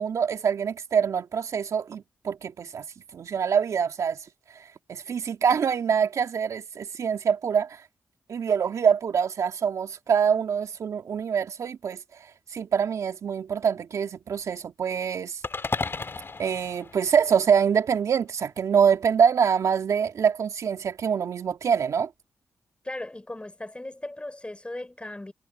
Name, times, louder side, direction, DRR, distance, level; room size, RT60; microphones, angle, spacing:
voice 1, 0.0-2.9 3.1-4.2 4.9-7.8 8.3-12.0 12.5-15.4 16.4-22.1, right 7 dB, 70° right, 2.3 m, -25 dB
sound 1, 15.4-17.8, left 4 dB, 45° left, 3.9 m, -34 dB
voice 2, 22.8-25.3, left 1 dB, 20° left, 5.2 m, -37 dB
supercardioid pair, 45°, 6 cm